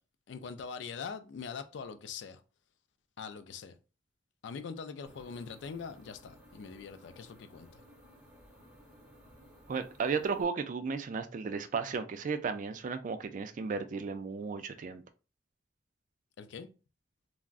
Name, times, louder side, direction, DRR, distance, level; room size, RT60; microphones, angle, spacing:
voice 1, 0.3-2.4 3.2-3.8 4.4-7.8 16.4-16.7, left 5 dB, 75° left, 0.4 m, -43 dB
sound 1, 5.1-10.4, equal, 5° right, 0.8 m, -57 dB
voice 2, 9.7-15.0, right 5 dB, 45° right, 0.3 m, -34 dB
3.4 x 2.0 x 2.4 m
head